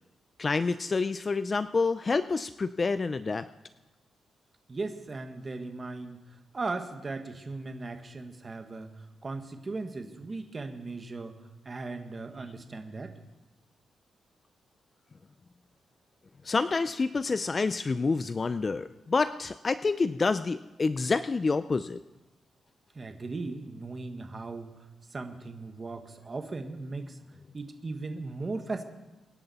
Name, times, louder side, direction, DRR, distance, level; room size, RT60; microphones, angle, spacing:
voice 1, 0.4-3.5 16.4-22.0, left 4 dB, 30° left, 12 dB, 0.4 m, -28 dB
voice 2, 4.7-6.2 6.5-8.9 9.2-11.3 11.6-13.1 22.9-24.7 25.1-27.2 27.5-28.8, right 3 dB, 30° right, 6 dB, 1.4 m, -37 dB
24.0 x 11.0 x 4.2 m, 1.1 s
cardioid pair, 120°, 0 cm